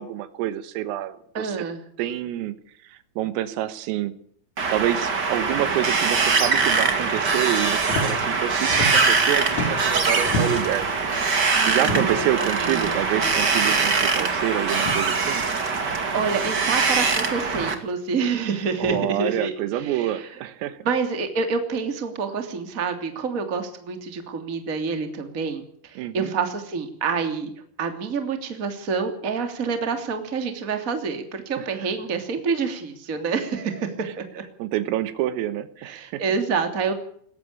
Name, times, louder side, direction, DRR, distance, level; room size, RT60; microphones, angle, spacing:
voice 1, 0.0-1.7 2.0-2.6 2.8-4.1 4.7-10.9 11.7-15.5 18.8-20.8 26.0-26.3 31.6-31.7 34.0-34.1 34.6-36.2, right 13 dB, 85° right, 13 dB, 4.0 m, -27 dB
voice 2, 1.3-1.8 11.5-13.0 14.2-14.3 16.1-19.5 19.8-20.3 20.8-27.5 27.8-34.4 35.8-36.9, right 5 dB, 25° right, 6 dB, 2.2 m, -27 dB
Wind, 4.6-17.7, right 4 dB, 50° right, 1.2 m, -22 dB
sound 1, 7.8-8.1 8.4-9.2 9.5-10.8 11.8-12.3 13.2-13.4 13.7-13.8 14.7-15.0 16.2-16.3 17.4-17.7 18.8-19.0, left 1 dB, 70° left, 6.3 m, -30 dB
20.5 x 14.5 x 8.6 m, 0.63 s
omnidirectional pair, 5.9 m